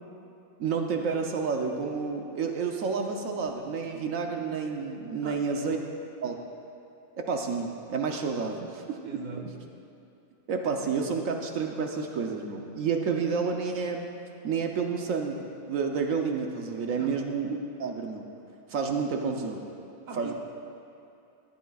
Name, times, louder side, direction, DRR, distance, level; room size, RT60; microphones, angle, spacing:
voice 1, 0.6-5.8 6.2-6.4 7.2-9.5 10.5-14.1 14.4-15.4 15.7-18.3 18.7-19.7 20.2-20.3, right 5 dB, 80° right, 2 dB, 1.2 m, -30 dB
voice 2, 5.2-5.9 8.5-8.6 9.0-9.5 16.9-17.2 20.1-20.3, right 5 dB, 35° right, 0 dB, 1.1 m, -41 dB
18.0 x 12.0 x 2.4 m, 2.8 s
omnidirectional pair, 1.4 m